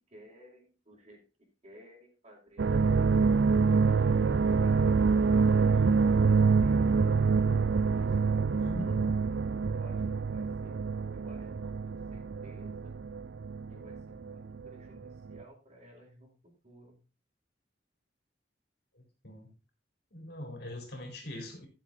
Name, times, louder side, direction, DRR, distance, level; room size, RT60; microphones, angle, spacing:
voice 1, 0.1-1.2 1.6-2.8 3.5-7.1 7.8-9.2 9.7-12.9 13.7-17.0, equal, 35° right, -6 dB, 4.6 m, -56 dB
sound 1, 2.6-14.7 15.0-15.4, right 5 dB, 70° right, 0.5 m, -26 dB
voice 2, 8.6-9.2 18.9-19.5 20.1-21.7, left 1 dB, 60° left, 2 dB, 4.3 m, -41 dB
13.5 x 7.7 x 4.0 m, 0.31 s
head